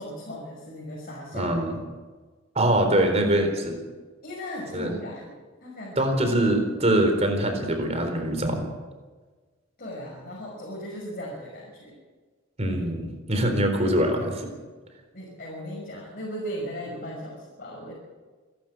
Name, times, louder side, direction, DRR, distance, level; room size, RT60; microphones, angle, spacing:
voice 1, 0.0-1.5 4.2-5.4 5.6-6.1 9.8-12.0 15.1-17.9, equal, 45° left, -4 dB, 6.1 m, -37 dB
voice 2, 1.3-1.7 2.5-3.8 4.7-4.9 6.0-8.7 12.6-14.5, right 1 dB, 30° right, 5 dB, 4.0 m, -23 dB
28.0 x 12.0 x 7.7 m, 1.4 s
head